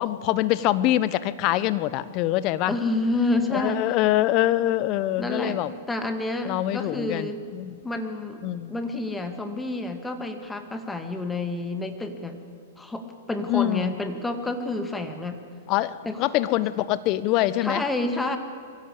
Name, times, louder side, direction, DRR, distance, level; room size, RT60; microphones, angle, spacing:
voice 1, 0.0-2.7 3.5-5.7 6.5-7.8 8.4-8.7 13.5-13.9 15.7-17.8, left 15 dB, 40° left, 16 dB, 0.9 m, -24 dB
voice 2, 2.6-3.8 5.2-7.4 7.8-8.4 8.7-12.4 12.8-15.4 16.1-16.3 17.6-18.4, left 2 dB, 10° left, 6 dB, 2.1 m, -29 dB
23.0 x 15.5 x 8.4 m, 2.4 s
hypercardioid pair, 125°, 0 cm